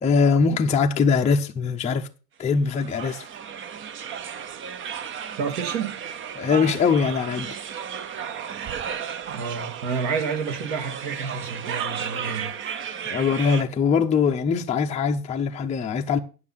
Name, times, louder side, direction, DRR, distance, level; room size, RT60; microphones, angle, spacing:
voice 1, 0.0-2.1 2.4-3.3 6.4-7.6 13.1-16.2, left 5 dB, 15° left, 0.6 m, -22 dB
sound 1, 2.7-13.6, right 8 dB, 25° right, 0.6 m, -34 dB
voice 2, 5.4-6.0 9.3-12.8, right 5 dB, 65° right, 2.5 m, -30 dB
9.5 x 6.1 x 5.6 m
supercardioid pair, 120°, 49 cm